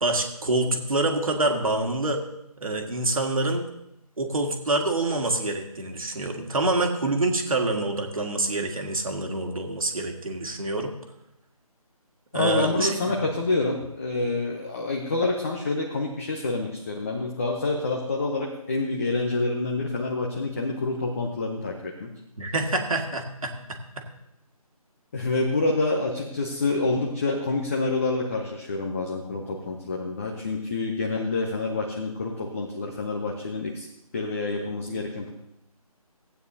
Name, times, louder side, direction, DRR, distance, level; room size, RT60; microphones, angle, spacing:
voice 1, 0.0-2.2 2.6-3.6 4.2-10.9 12.3-13.2 22.4-23.5, right 2 dB, 65° right, 2 dB, 1.8 m, -26 dB
voice 2, 12.3-22.1 25.1-33.9 34.1-35.3, left 3 dB, 20° left, 0 dB, 0.7 m, -27 dB
16.0 x 8.9 x 2.8 m, 0.85 s
figure-of-eight pair, 160°, 19 cm